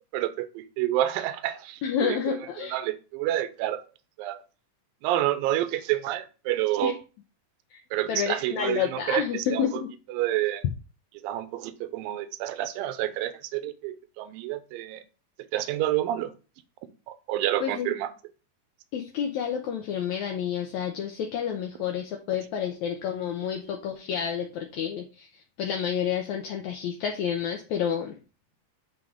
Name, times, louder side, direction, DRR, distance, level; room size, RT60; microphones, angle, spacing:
voice 1, 0.1-2.4 2.7-3.8 4.2-4.4 5.0-6.9 7.9-9.6 10.1-10.6 11.2-15.0 15.5-16.3 17.1-18.1, right 13 dB, 80° right, 12 dB, 2.4 m, -28 dB
voice 2, 1.8-2.8 6.8-6.9 7.7-7.8 8.1-9.9 17.6-17.9 18.9-28.1, left 8 dB, 80° left, 3 dB, 1.7 m, -29 dB
9.2 x 3.7 x 3.6 m, 0.34 s
omnidirectional pair, 4.1 m